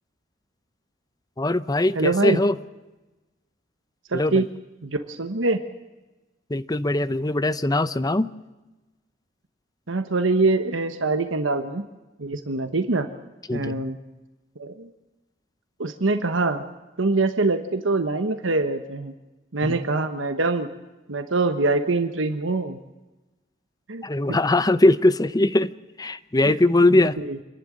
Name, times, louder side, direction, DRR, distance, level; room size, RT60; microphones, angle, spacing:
voice 1, 1.4-2.5 4.1-4.4 6.5-8.3 13.5-13.8 19.6-19.8 24.0-25.7 26.0-27.1, left 2 dB, 20° left, 14 dB, 0.7 m, -21 dB
voice 2, 1.9-2.4 4.1-4.5 4.8-5.6 9.9-11.8 12.2-13.1 13.5-14.0 14.6-14.9 15.8-16.6 17.0-19.1 19.5-20.7 21.1-22.8 23.9-24.4 26.4-26.6 26.9-27.4, right 3 dB, 85° right, 8 dB, 1.2 m, -24 dB
27.0 x 11.5 x 9.8 m, 1.1 s
head